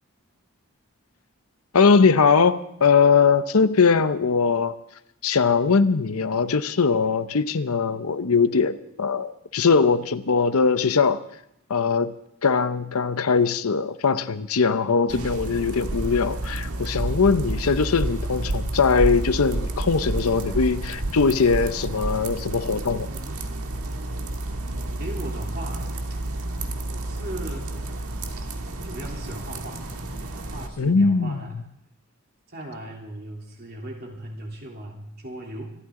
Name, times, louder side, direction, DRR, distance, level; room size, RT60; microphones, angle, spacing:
voice 1, 1.7-4.8 5.2-11.2 11.7-12.1 12.4-23.1 30.8-31.4, left 5 dB, 80° left, 0.7 m, -21 dB
sound 1, 15.1-30.7, right 2 dB, 85° right, 1.5 m, -30 dB
voice 2, 25.0-25.9 26.9-27.8 28.8-29.9 30.5-31.6 32.5-35.6, right 1 dB, 45° right, 3.2 m, -37 dB
25.5 x 13.0 x 3.8 m
head